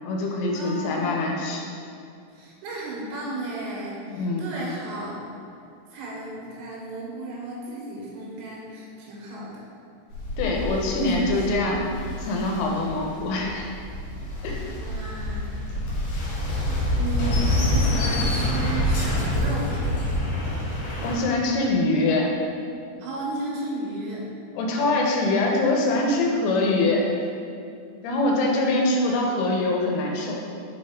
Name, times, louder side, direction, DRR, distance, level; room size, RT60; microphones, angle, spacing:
voice 1, 0.0-1.7 4.1-4.5 10.4-11.9 12.2-13.7 14.4-14.6 21.0-22.3 24.5-27.0 28.0-30.4, left 2 dB, 90° left, -1 dB, 3.4 m, -24 dB
voice 2, 0.5-1.2 2.3-5.3 5.9-9.6 10.8-11.7 14.7-15.6 16.3-19.9 23.0-24.3, right 1 dB, 80° right, -4 dB, 3.9 m, -34 dB
sound 1, 10.1-21.2, left 1 dB, 70° left, 2.8 m, -27 dB
7.9 x 4.4 x 3.6 m, 2.5 s
omnidirectional pair, 5.7 m